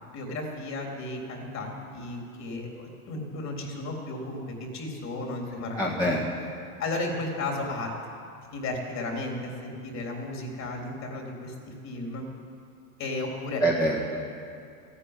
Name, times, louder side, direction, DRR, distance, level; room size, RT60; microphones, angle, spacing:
voice 1, 0.1-5.8 6.8-7.9 8.5-12.3 13.0-13.6, left 2 dB, 35° left, 0 dB, 3.7 m, -34 dB
voice 2, 5.8-6.3 13.6-14.2, right 1 dB, 10° left, -5 dB, 1.8 m, -25 dB
15.0 x 9.9 x 9.7 m, 2.4 s
supercardioid pair, 130°, 44 cm